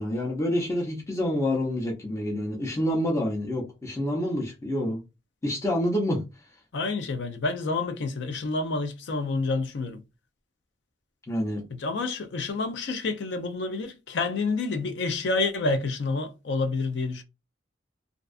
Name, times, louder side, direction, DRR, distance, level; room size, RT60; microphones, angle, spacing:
voice 1, 0.0-5.0 5.4-6.2 11.3-11.6, left 1 dB, 15° left, 0.5 m, -27 dB
voice 2, 6.7-10.0 11.7-17.2, left 3 dB, 65° left, 0.4 m, -28 dB
2.5 x 2.3 x 2.3 m
head